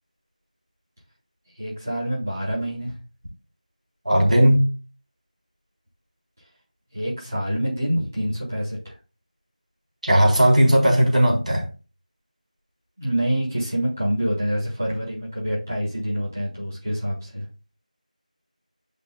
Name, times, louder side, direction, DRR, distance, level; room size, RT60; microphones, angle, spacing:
voice 1, 1.6-2.9 6.9-8.9 13.0-17.4, equal, 20° right, 3.7 m, -26 dB
voice 2, 4.1-4.6 10.0-11.7, equal, 60° right, 3.9 m, -17 dB
12.0 x 5.5 x 2.4 m
figure-of-eight pair, 180°, 4 cm